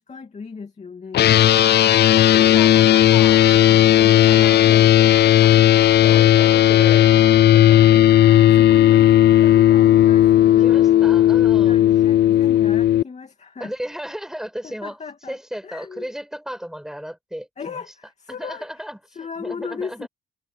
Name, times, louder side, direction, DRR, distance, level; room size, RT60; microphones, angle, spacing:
voice 1, 0.0-1.5 4.6-4.9 6.1-6.3 8.4-10.9 11.7-13.7 14.6-15.4 15.6-16.1 17.6-18.9 19.1-20.1, left 5 dB, 35° left, 2.6 m, -36 dB
sound 1, 1.1-13.0, left 12 dB, 55° left, 0.5 m, -14 dB
voice 2, 1.4-8.5 10.6-11.8 13.6-15.0 15.3-17.8 18.3-20.1, equal, ahead, 5.8 m, -36 dB
cardioid pair, 90°, 20 cm